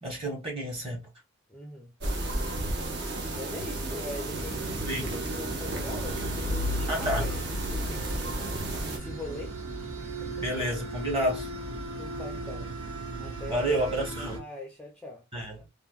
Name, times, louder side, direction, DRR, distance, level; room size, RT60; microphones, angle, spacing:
voice 1, 0.0-1.1 4.9-5.1 6.9-7.3 10.4-11.5 13.5-14.4 15.3-15.6, right 1 dB, 25° right, 1.1 m, -30 dB
voice 2, 1.5-1.9 3.3-8.4 8.9-9.5 10.2-10.4 11.8-12.7 13.2-13.8 14.2-15.2, left 1 dB, 5° left, 0.4 m, -42 dB
sound 1, 2.0-9.0, right 2 dB, 55° right, 0.7 m, -33 dB
sound 2, 4.3-14.4, right 2 dB, 80° right, 1.1 m, -37 dB
sound 3, 6.1-9.0, left 3 dB, 70° left, 0.3 m, -35 dB
3.2 x 2.1 x 2.2 m
head